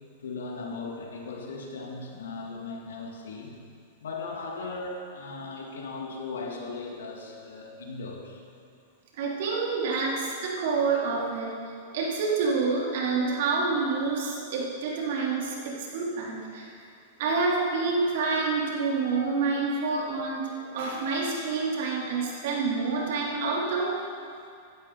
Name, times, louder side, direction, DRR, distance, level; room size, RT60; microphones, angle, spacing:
voice 1, 0.2-3.6 4.0-8.4, left 3 dB, 90° left, 0 dB, 2.5 m, -37 dB
voice 2, 9.2-11.5 11.9-16.7 17.2-23.9, right 4 dB, 65° right, -4 dB, 4.0 m, -28 dB
17.5 x 12.0 x 4.3 m, 2.4 s
hypercardioid pair, 130°, 0 cm